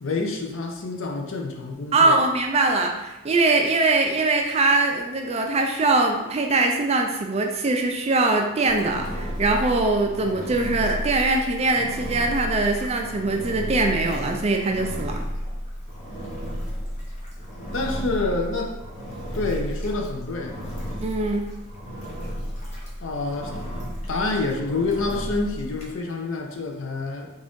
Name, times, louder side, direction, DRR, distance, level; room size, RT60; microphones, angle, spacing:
voice 1, 0.0-2.2 17.7-18.7 19.3-20.6 23.0-23.5 24.1-27.4, left 3 dB, 60° left, 2 dB, 0.6 m, -27 dB
voice 2, 1.9-15.2 21.0-21.5, right 3 dB, 30° right, 3 dB, 0.3 m, -22 dB
Engine, 8.6-25.9, equal, 30° left, 0.8 m, -33 dB
3.6 x 2.6 x 3.5 m, 1.0 s
head